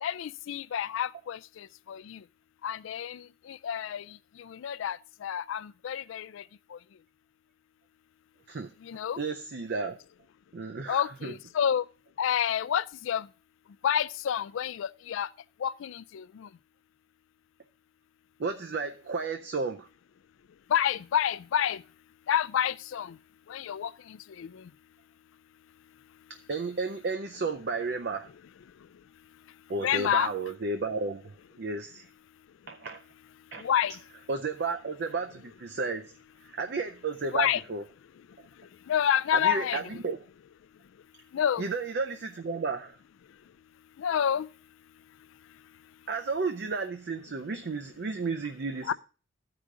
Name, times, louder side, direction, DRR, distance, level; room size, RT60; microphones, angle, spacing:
voice 1, 0.0-2.2 2.6-6.4 6.7-6.8 8.8-9.2 10.9-11.9 12.2-13.3 13.8-15.3 15.6-16.5 20.7-21.8 22.3-23.2 23.5-24.7 29.8-30.3 33.6-34.0 37.3-37.6 38.9-39.9 41.3-41.7 44.0-44.5 48.8-48.9, left 9 dB, 70° left, 0.3 m, -29 dB
voice 2, 9.2-10.0 10.5-11.3 18.4-19.9 26.5-28.3 29.7-32.1 32.7-33.0 33.5-33.6 34.3-36.1 36.6-37.8 39.3-40.2 41.6-43.0 46.1-48.9, right 4 dB, 50° right, 0.5 m, -33 dB
13.5 x 5.0 x 3.7 m
head